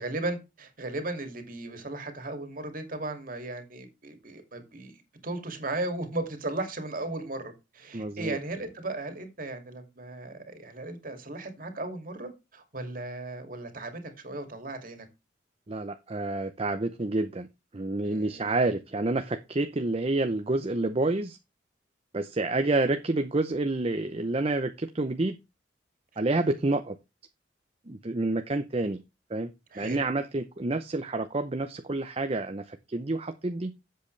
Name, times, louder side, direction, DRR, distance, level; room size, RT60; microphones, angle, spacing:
voice 1, 0.0-4.9 5.2-15.1 18.0-18.6 29.7-30.0, right 2 dB, 50° right, 2.5 m, -36 dB
voice 2, 7.9-8.4 15.7-17.5 17.7-21.4 22.1-25.4 26.2-27.0 27.9-29.0 29.3-33.7, right 2 dB, 35° right, 0.7 m, -28 dB
11.5 x 7.9 x 3.3 m
head